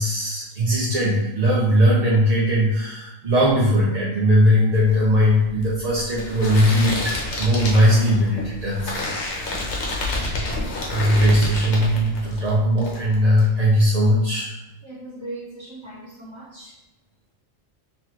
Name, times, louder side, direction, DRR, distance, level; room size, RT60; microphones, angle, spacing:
voice 1, 0.0-10.5 10.9-14.6, equal, 45° right, -5 dB, 0.5 m, -19 dB
sound 1, 4.8-12.5 12.8-13.4, left 2 dB, 60° left, 1.1 m, -29 dB
voice 2, 14.8-16.8, right 2 dB, 20° right, -7 dB, 1.3 m, -38 dB
4.0 x 3.1 x 2.9 m, 0.95 s
omnidirectional pair, 1.4 m